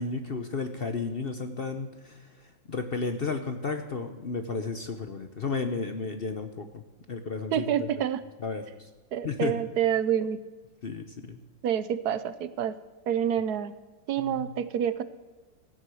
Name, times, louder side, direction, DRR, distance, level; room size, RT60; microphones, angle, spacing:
voice 1, 0.0-2.3 2.7-6.8 7.1-7.9 8.4-8.9 9.2-9.5 10.8-11.4 14.2-14.5, left 4 dB, 55° left, 7 dB, 0.6 m, -33 dB
voice 2, 7.5-8.2 9.1-10.4 11.6-12.8 13.1-13.7 14.1-15.0, right 9 dB, 65° right, 13 dB, 1.1 m, -27 dB
15.0 x 9.7 x 6.3 m, 1.3 s
omnidirectional pair, 2.1 m